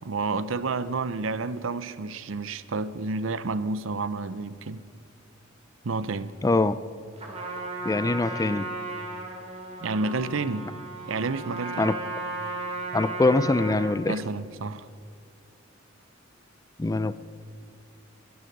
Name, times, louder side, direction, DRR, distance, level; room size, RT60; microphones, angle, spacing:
voice 1, 0.0-4.8 5.8-6.3 9.8-10.7 11.1-11.9 14.1-14.9, right 3 dB, 70° right, 0.6 m, -30 dB
voice 2, 6.4-6.7 7.8-8.7 11.8-12.0 12.9-14.2 16.8-17.1, left 2 dB, 20° left, 0.4 m, -23 dB
Trumpet, 7.2-14.0, right 2 dB, 35° right, 2.6 m, -35 dB
24.5 x 11.0 x 5.3 m
head